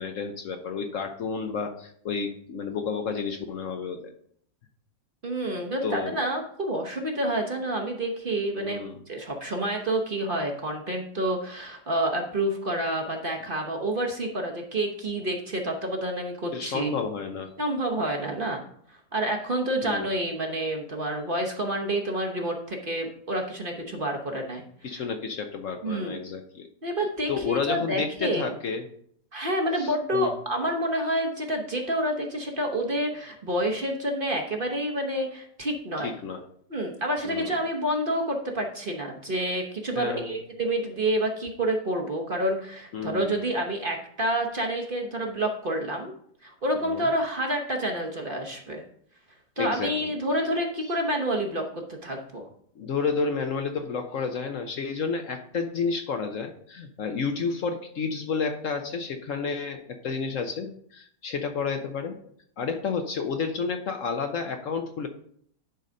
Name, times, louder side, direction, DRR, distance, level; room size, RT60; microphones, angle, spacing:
voice 1, 0.0-4.1 5.8-6.2 8.5-9.0 16.5-17.5 19.8-20.1 23.8-24.0 24.8-26.7 27.3-28.8 29.8-30.4 36.0-36.4 37.2-37.5 39.9-40.4 42.9-43.4 46.8-47.1 49.6-50.1 52.8-62.2 62.6-65.1, left 5 dB, 60° left, 6 dB, 1.0 m, -31 dB
voice 2, 5.2-16.9 17.6-18.6 18.9-24.6 24.9-25.0 25.8-26.2 26.8-28.4 29.3-36.1 36.7-46.1 46.4-48.8 49.6-51.7 52.0-52.5, right 1 dB, 40° right, 1 dB, 1.0 m, -28 dB
10.5 x 4.0 x 5.1 m, 0.65 s
omnidirectional pair, 1.7 m